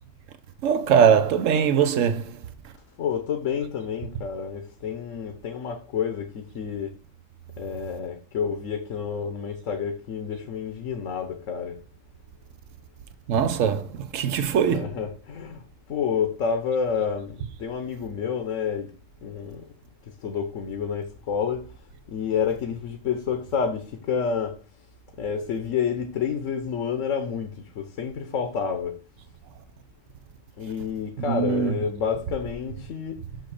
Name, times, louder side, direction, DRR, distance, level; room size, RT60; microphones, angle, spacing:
voice 1, 0.6-2.4 13.3-14.9 31.3-31.7, right 7 dB, 75° right, 1.2 m, -21 dB
voice 2, 3.0-7.0 7.6-11.8 14.3-14.4 14.7-15.6 15.9-18.9 19.2-19.7 20.2-21.7 22.1-24.6 25.2-29.0 30.6-33.2, left 7 dB, 75° left, 1.3 m, -29 dB
6.3 x 6.1 x 4.9 m
omnidirectional pair, 1.3 m